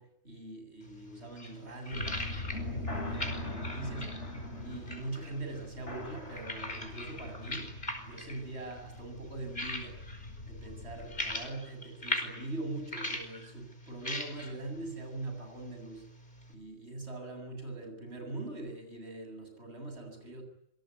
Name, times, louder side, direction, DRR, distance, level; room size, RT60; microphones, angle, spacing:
voice 1, 0.0-4.2 4.6-7.7 8.0-10.0 10.5-16.1 16.5-20.4, right 2 dB, 70° right, 5 dB, 8.5 m, -42 dB
sound 1, 0.8-16.5, left 1 dB, 45° left, 5.4 m, -42 dB
sound 2, 1.9-11.4, left 1 dB, 75° left, 5.6 m, -42 dB
27.5 x 20.5 x 9.8 m, 0.78 s
omnidirectional pair, 1.2 m